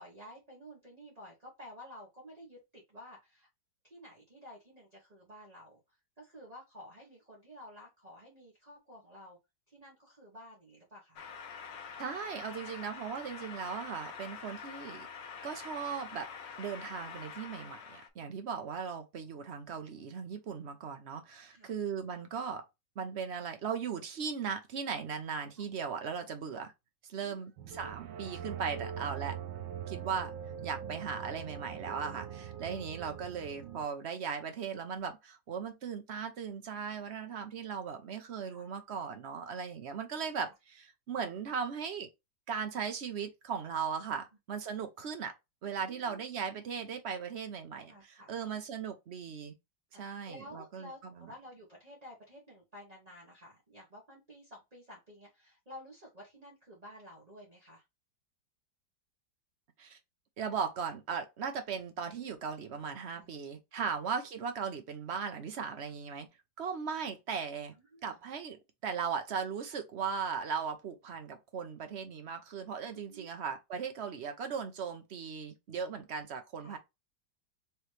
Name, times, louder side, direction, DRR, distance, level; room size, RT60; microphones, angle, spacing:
voice 1, 0.0-3.5 3.8-9.4 9.7-11.3 18.2-18.5 21.5-21.8 25.6-25.7 27.2-27.4 37.2-37.3 38.4-38.7 45.8-46.2 47.8-48.5 49.9-57.8 63.1-63.4 63.8-63.9 65.9-66.0 67.8-68.2 72.9-73.3 76.6-76.8, equal, 25° right, 1.4 m, -52 dB
sound 1, 11.2-18.1, left 6 dB, 80° left, 1.5 m, -46 dB
voice 2, 12.0-15.1 15.4-16.3 16.6-22.6 23.0-26.7 27.1-29.4 29.9-30.3 30.6-42.1 42.5-45.3 45.6-49.5 50.0-51.1 59.8-60.0 60.4-66.3 66.6-67.7 68.0-76.8, right 6 dB, 55° right, 0.8 m, -38 dB
sound 2, 27.6-33.9, right 9 dB, 85° right, 1.4 m, -42 dB
4.7 x 3.1 x 3.3 m
omnidirectional pair, 1.9 m